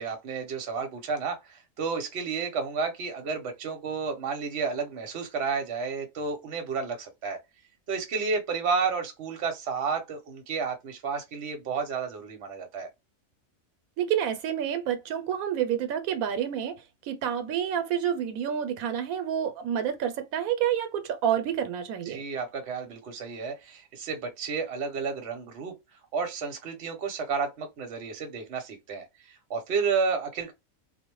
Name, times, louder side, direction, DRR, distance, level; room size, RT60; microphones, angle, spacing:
voice 1, 0.0-7.4 7.9-12.9 22.1-25.7 26.1-29.1 29.5-30.5, right 5 dB, 60° right, 0.9 m, -31 dB
voice 2, 14.0-22.2, right 9 dB, 85° right, 1.0 m, -29 dB
2.4 x 2.1 x 3.0 m
omnidirectional pair, 1.4 m